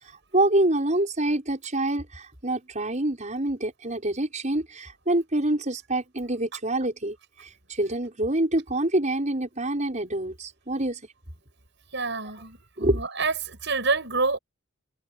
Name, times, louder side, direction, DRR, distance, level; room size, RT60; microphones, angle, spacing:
voice 1, 0.3-7.2 7.4-11.0 12.8-13.0, right 1 dB, 35° right, 6.3 m, -26 dB
voice 2, 11.9-14.4, right 4 dB, 60° right, 7.4 m, -27 dB
head